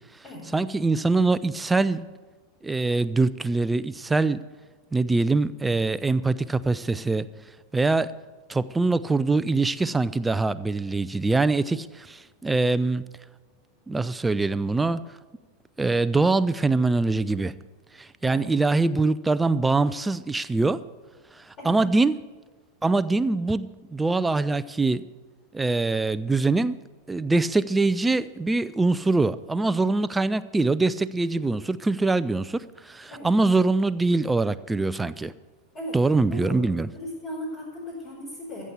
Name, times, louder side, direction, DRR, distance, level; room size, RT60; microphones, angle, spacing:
voice 1, 0.5-2.0 2.6-4.4 4.9-7.3 7.7-8.1 8.5-13.1 13.9-15.0 15.8-17.5 18.0-20.8 21.4-22.2 22.8-25.0 25.5-26.8 27.1-35.3 35.9-36.9, right 3 dB, 10° right, 15 dB, 0.4 m, -23 dB
voice 2, 36.9-38.7, left 1 dB, 30° left, -7 dB, 4.7 m, -36 dB
14.5 x 7.4 x 8.2 m, 1.3 s
figure-of-eight pair, 90°, 0 cm